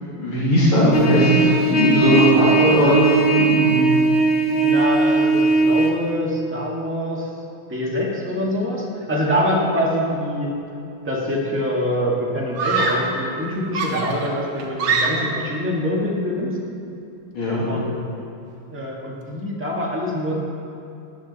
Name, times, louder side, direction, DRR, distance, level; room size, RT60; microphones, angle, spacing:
voice 1, 0.0-2.9 3.4-3.8 17.3-17.7, equal, 80° left, -9 dB, 3.1 m, -18 dB
Trumpet, 0.9-5.9, right 4 dB, 45° left, 0.6 m, -18 dB
voice 2, 2.6-3.5 4.6-7.3 7.7-10.5 11.0-16.6 17.6-18.1 18.7-20.4, equal, 5° right, -3 dB, 1.6 m, -24 dB
Screaming, 11.0-11.5 12.6-13.2 13.7-15.5, right 4 dB, 70° right, 1.9 m, -24 dB
13.5 x 12.5 x 4.1 m, 2.7 s
omnidirectional pair, 2.3 m